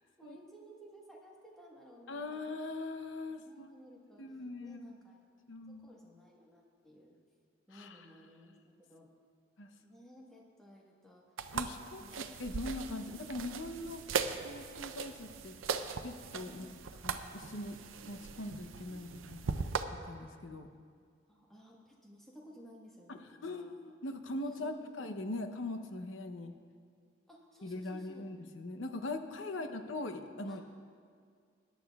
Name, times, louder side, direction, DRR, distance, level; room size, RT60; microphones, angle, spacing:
voice 1, 0.2-2.4 3.1-5.3 5.7-7.2 7.7-9.1 9.8-11.2 12.0-12.4 16.5-16.7 18.9-19.3 21.3-23.7 24.4-24.9 27.3-28.2 29.5-29.7 30.5-30.6, equal, ahead, -3 dB, 1.3 m, -57 dB
voice 2, 2.1-3.7 4.2-4.8 5.5-5.9 7.7-8.0 9.6-9.7 11.5-14.0 14.4-15.6 16.0-17.8 18.1-19.6 20.1-20.7 23.1-26.5 27.6-30.6, left 2 dB, 75° left, 7 dB, 0.8 m, -41 dB
sound 1, 11.4-19.8, right 5 dB, 90° right, 0.5 m, -39 dB
20.5 x 10.5 x 2.3 m, 2.1 s
head